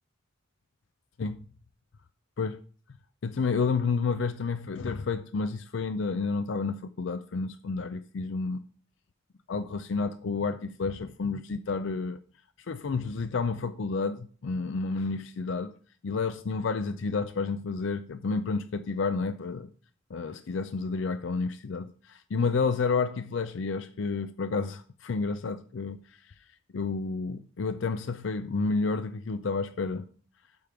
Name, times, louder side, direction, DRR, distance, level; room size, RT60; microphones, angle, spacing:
voice 1, 3.2-8.6 9.5-12.2 12.7-15.8 16.0-19.7 20.1-26.0 26.7-30.1, left 4 dB, 65° left, 0.5 m, -30 dB
8.5 x 5.1 x 5.8 m
head